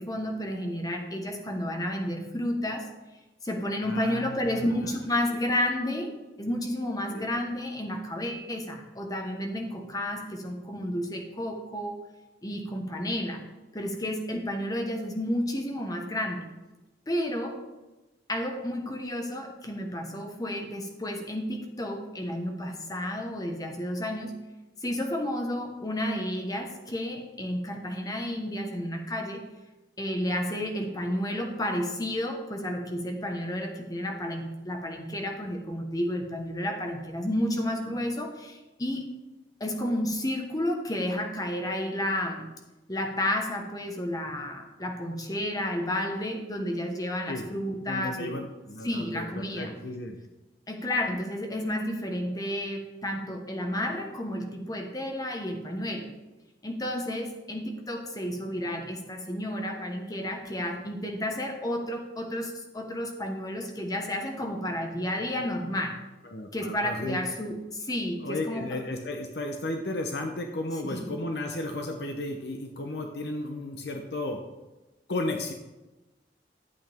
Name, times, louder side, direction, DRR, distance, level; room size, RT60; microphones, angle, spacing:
voice 1, 0.0-2.9 3.4-12.0 12.4-13.4 13.7-16.5 17.1-17.6 18.3-24.3 24.8-29.4 30.0-39.1 39.6-42.5 42.9-48.5 48.8-49.7 50.7-56.1 56.6-66.0 66.5-68.8 70.8-71.1, left 1 dB, 20° left, 3 dB, 1.2 m, -31 dB
voice 2, 3.8-4.9 5.3-5.4 7.1-7.3 47.3-47.4 47.9-50.2 66.2-67.2 68.2-74.4 75.1-75.5, left 2 dB, 65° left, 4 dB, 0.8 m, -34 dB
12.0 x 8.0 x 3.5 m, 1.1 s
head